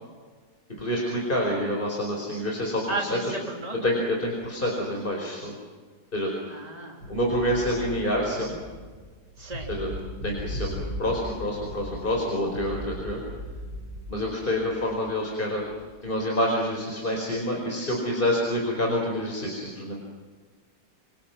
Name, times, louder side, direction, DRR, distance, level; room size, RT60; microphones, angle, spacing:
voice 1, 0.8-3.3 3.8-5.5 6.1-6.3 7.1-8.6 9.7-9.9 10.2-13.2 14.1-15.6 16.0-20.0, left 1 dB, 30° left, -1 dB, 5.1 m, -27 dB
voice 2, 2.9-3.9 6.5-7.1 9.4-9.7, right 2 dB, 20° right, 0 dB, 3.8 m, -33 dB
sound 1, 7.0-15.0 15.6-16.0, equal, 65° right, 8.4 m, -38 dB
28.5 x 28.0 x 6.1 m, 1.5 s
omnidirectional pair, 1.9 m